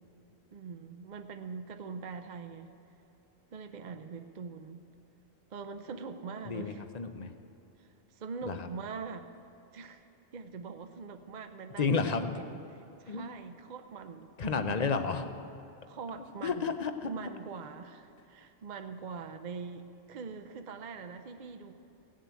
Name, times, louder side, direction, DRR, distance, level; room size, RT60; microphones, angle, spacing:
voice 1, 0.5-2.7 3.5-4.8 5.5-6.8 7.8-9.3 9.7-10.1 10.3-14.8 15.9-16.7 17.0-21.7, right 5 dB, 50° right, 7 dB, 0.6 m, -43 dB
voice 2, 6.4-7.3 8.5-8.7 11.8-12.2 13.1-13.2 14.4-15.3 16.4-17.1, left 5 dB, 45° left, 8 dB, 0.7 m, -31 dB
16.0 x 7.5 x 8.3 m, 2.9 s
omnidirectional pair, 1.2 m